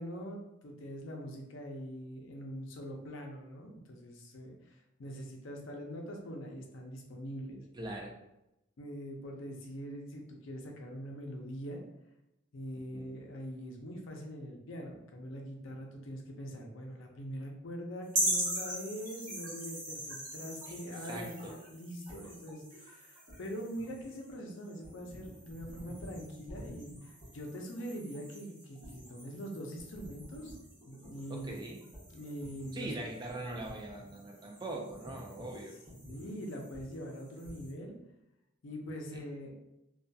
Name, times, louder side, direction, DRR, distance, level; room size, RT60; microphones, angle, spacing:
voice 1, 0.0-7.6 8.8-11.8 12.5-30.6 30.9-31.6 32.1-32.9 35.9-38.0 38.6-39.5, equal, 75° left, 1 dB, 0.5 m, -43 dB
voice 2, 7.8-8.1 12.9-13.2 20.7-20.8 21.0-21.5 31.3-31.8 32.7-35.7 39.1-39.2, right 2 dB, 20° right, 0 dB, 0.4 m, -41 dB
sound 1, 18.1-37.7, right 1 dB, 40° right, 1.0 m, -42 dB
2.6 x 2.3 x 2.2 m, 0.88 s
head